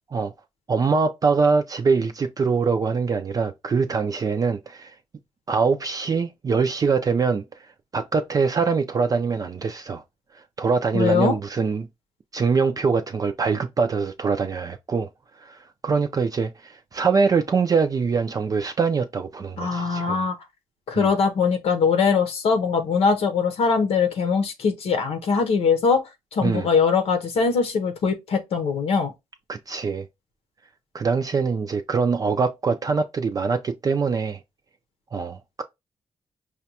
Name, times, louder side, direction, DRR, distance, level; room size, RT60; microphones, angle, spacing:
voice 1, 0.7-5.0 5.5-7.4 7.9-10.0 10.3-11.9 12.3-15.1 15.4-20.3 20.9-21.1 26.4-26.7 29.5-30.1 30.9-34.4 35.1-35.6, right 5 dB, 40° right, 0.4 m, -23 dB
voice 2, 10.9-11.4 19.6-20.3 20.9-26.0 26.3-29.1, left 5 dB, 90° left, 0.8 m, -21 dB
4.8 x 2.2 x 2.8 m
cardioid pair, 95°, 10 cm